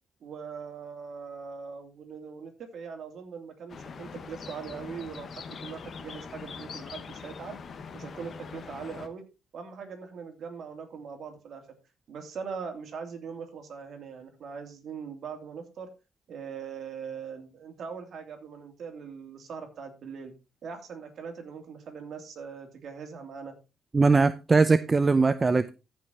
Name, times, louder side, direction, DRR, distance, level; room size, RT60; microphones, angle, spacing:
voice 1, 0.2-7.6 7.9-9.2 9.5-11.6 12.1-15.9 16.3-20.3 20.6-23.5, right 6 dB, 60° right, 2.9 m, -41 dB
sound 1, 3.7-9.1, left 5 dB, 50° left, 1.3 m, -42 dB
voice 2, 23.9-25.7, right 4 dB, 25° right, 0.6 m, -21 dB
14.0 x 5.6 x 4.1 m
cardioid pair, 90°, 0 cm